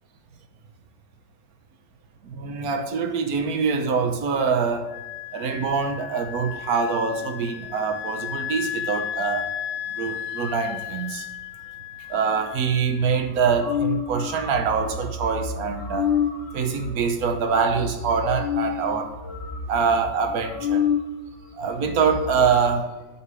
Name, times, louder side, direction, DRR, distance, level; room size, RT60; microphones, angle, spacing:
voice 1, 2.2-4.9 5.3-9.5 9.9-11.3 12.1-16.1 16.5-19.1 19.7-20.9 21.6-22.9, right 5 dB, 60° right, 6 dB, 1.2 m, -24 dB
Wind instrument woodwind instrument, 4.9-13.2, left 10 dB, 80° left, 1.3 m, -34 dB
sound 1, 13.2-21.1 21.4-21.5 21.7-22.5, left 7 dB, 5° right, 1.7 m, -29 dB
8.5 x 3.6 x 6.8 m, 1.1 s
omnidirectional pair, 2.1 m